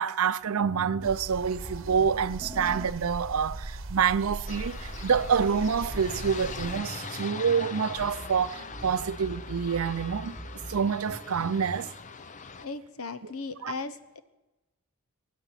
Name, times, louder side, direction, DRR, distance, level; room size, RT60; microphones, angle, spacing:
voice 1, 0.0-10.4 10.7-11.9 13.6-13.7, right 6 dB, 85° right, 0.5 m, -27 dB
sound 1, 0.6-11.9, right 1 dB, 10° right, 1.4 m, -44 dB
sound 2, 1.0-6.8, right 2 dB, 60° right, 0.9 m, -39 dB
sound 3, 4.5-12.7, left 5 dB, 35° left, 0.6 m, -42 dB
voice 2, 12.6-14.2, left 3 dB, 90° left, 1.1 m, -37 dB
24.0 x 10.0 x 5.9 m
head